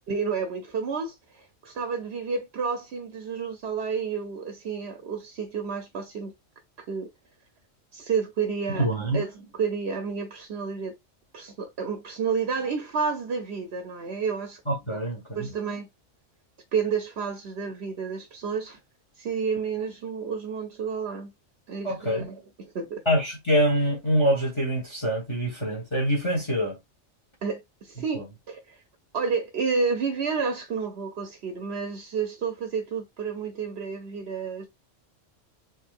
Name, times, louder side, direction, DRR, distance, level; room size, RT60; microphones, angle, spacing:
voice 1, 0.1-6.3 6.9-7.1 7.9-10.9 11.3-14.6 15.3-15.9 16.7-18.8 19.2-21.3 21.7-23.0 27.4-28.8 29.1-34.7, right 5 dB, 60° right, 0.9 m, -30 dB
voice 2, 8.8-9.2 14.7-15.5 21.8-22.2 23.0-26.8 28.1-28.2, equal, 25° left, 1.3 m, -25 dB
4.4 x 3.1 x 2.4 m
omnidirectional pair, 1.3 m